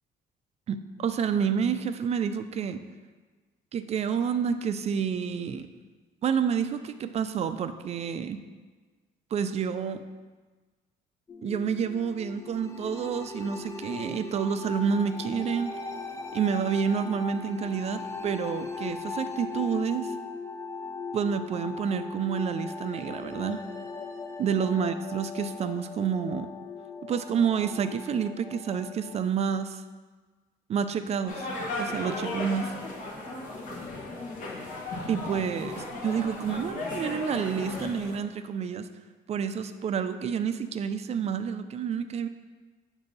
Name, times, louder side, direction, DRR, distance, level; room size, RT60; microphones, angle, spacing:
voice 1, 0.7-2.8 3.7-5.7 6.2-8.4 9.3-10.0 11.4-15.7 16.3-20.1 21.1-23.6 24.4-26.5 27.1-29.8 30.7-31.5 31.8-32.7 35.1-35.7 36.0-38.9 39.3-42.3, right 7 dB, 40° right, 10 dB, 0.4 m, -29 dB
sound 1, 11.3-29.3, left 4 dB, 15° left, 0.5 m, -39 dB
sound 2, 31.3-38.2, left 2 dB, 50° left, 1.2 m, -35 dB
7.6 x 2.7 x 5.3 m, 1.4 s
cardioid pair, 110°, 17 cm